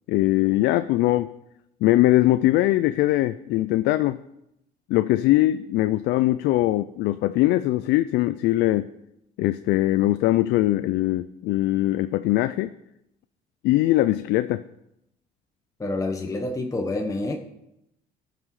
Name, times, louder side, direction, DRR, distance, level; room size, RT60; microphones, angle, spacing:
voice 1, 0.1-1.3 1.8-4.2 4.9-8.9 9.4-12.7 13.6-14.6, left 16 dB, 85° left, 12 dB, 0.4 m, -21 dB
voice 2, 15.8-17.4, left 2 dB, 20° left, 3 dB, 1.0 m, -27 dB
15.0 x 5.9 x 4.8 m, 0.82 s
cardioid pair, 110°, 17 cm